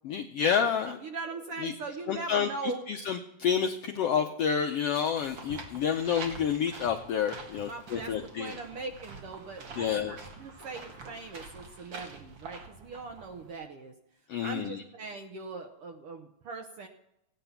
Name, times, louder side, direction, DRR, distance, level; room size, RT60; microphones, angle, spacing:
voice 1, 0.0-1.0 1.6-1.7 2.1-8.6 9.8-10.2 14.3-14.8, left 7 dB, 90° left, 5 dB, 1.3 m, -29 dB
voice 2, 0.8-2.8 7.6-13.9 14.4-16.9, right 4 dB, 75° right, 4 dB, 1.3 m, -40 dB
sound 1, 5.2-13.5, right 3 dB, 45° right, 1.8 m, -46 dB
16.0 x 9.6 x 5.7 m, 0.85 s
omnidirectional pair, 3.8 m